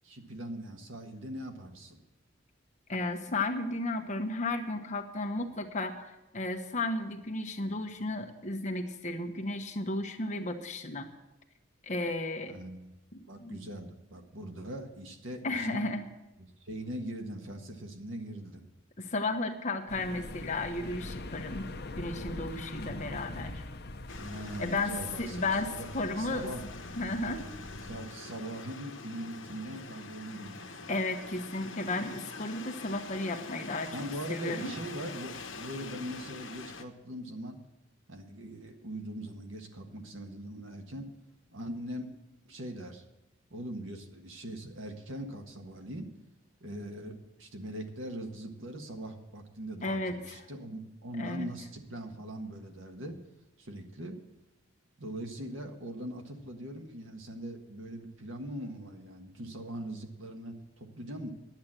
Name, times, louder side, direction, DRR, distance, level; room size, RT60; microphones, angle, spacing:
voice 1, 0.0-2.0 12.5-12.9 13.3-15.8 16.4-18.6 24.2-25.9 26.2-26.6 27.9-30.9 33.9-37.6 38.1-41.1 41.5-42.2 42.4-43.0 43.5-46.1 46.6-53.2 53.6-54.2 55.0-61.3, right 1 dB, 80° right, 4 dB, 1.6 m, -41 dB
voice 2, 2.9-11.1 11.8-12.5 13.4-13.6 15.4-16.0 19.0-21.7 22.0-23.6 24.6-26.5 27.0-27.5 30.9-34.0 34.3-34.7 49.8-50.4 51.2-51.5, left 2 dB, 40° left, 5 dB, 1.1 m, -34 dB
sound 1, 19.9-28.1, left 2 dB, 55° left, 0.8 m, -43 dB
sound 2, 24.1-36.8, left 4 dB, 80° left, 1.1 m, -45 dB
10.5 x 8.1 x 8.9 m, 0.98 s
head